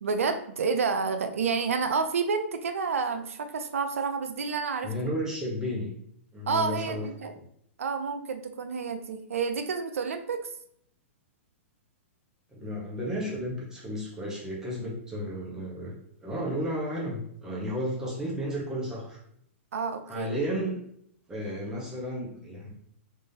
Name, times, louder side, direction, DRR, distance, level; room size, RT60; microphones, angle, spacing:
voice 1, 0.0-4.9 6.5-7.3 7.8-10.5 19.7-20.3, right 5 dB, 85° right, 8 dB, 0.5 m, -29 dB
voice 2, 4.8-5.9 6.3-7.4 12.5-15.9 16.2-19.2 20.1-20.8 21.3-22.7, equal, 10° right, -5 dB, 1.3 m, -33 dB
3.7 x 3.2 x 2.8 m, 0.68 s
hypercardioid pair, 125°, 7 cm